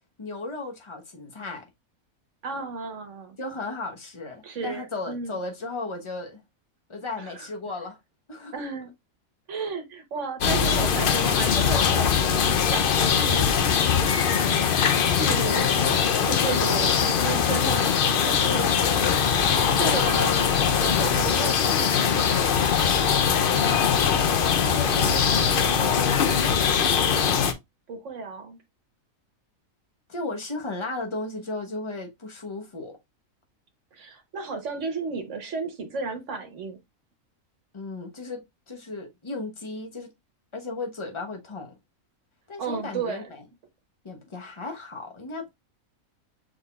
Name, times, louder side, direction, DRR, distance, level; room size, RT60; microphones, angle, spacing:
voice 1, 0.2-1.7 3.4-6.4 6.9-8.0 8.3-8.5 10.4-11.0 18.2-19.0 23.7-27.3 30.1-33.0 37.7-40.1 40.5-41.7 42.5-43.4 44.0-45.5, left 3 dB, 25° left, 1.0 m, -36 dB
voice 2, 2.4-3.4 4.4-5.4 7.2-7.5 8.5-8.9 9.5-12.1 12.6-13.5 14.7-15.8 16.2-18.7 19.8-22.3 27.9-28.6 33.9-36.8 42.6-43.2, right 4 dB, 60° right, 1.4 m, -33 dB
sound 1, 10.4-27.5, left 7 dB, 55° left, 0.6 m, -22 dB
6.4 x 3.6 x 2.3 m
omnidirectional pair, 1.5 m